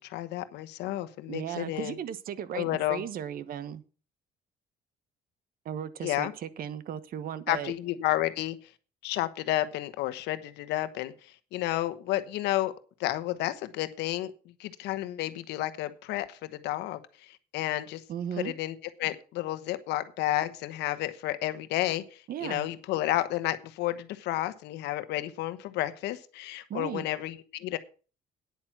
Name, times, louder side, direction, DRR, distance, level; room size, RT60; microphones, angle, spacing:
voice 1, 0.0-2.0 2.5-3.0 6.0-6.3 7.5-8.6 9.0-12.7 13.0-14.3 14.6-17.0 17.3-18.0 18.4-27.8, left 15 dB, 85° left, 12 dB, 1.1 m, -31 dB
voice 2, 1.3-3.8 5.6-7.7 18.1-18.5 22.3-22.7 26.7-27.0, right 9 dB, 60° right, 15 dB, 1.2 m, -36 dB
9.8 x 8.8 x 6.0 m, 0.37 s
cardioid pair, 110°, 17 cm